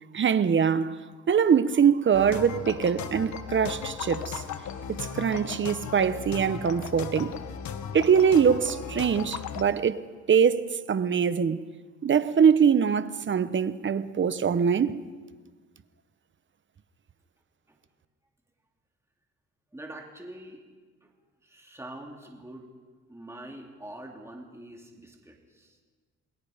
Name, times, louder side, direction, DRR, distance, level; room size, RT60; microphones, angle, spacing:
voice 1, 0.1-1.0 1.3-4.4 4.9-7.4 7.9-10.0 10.3-11.7 12.0-15.0, right 7 dB, 40° right, 1.0 m, -23 dB
sound 1, 2.1-9.6, left 7 dB, 70° left, 1.6 m, -36 dB
voice 2, 19.7-20.6 21.0-21.1 21.4-22.7 23.1-25.8, right 1 dB, 10° right, 2.9 m, -44 dB
28.0 x 21.0 x 5.1 m
cardioid pair, 90°, 30 cm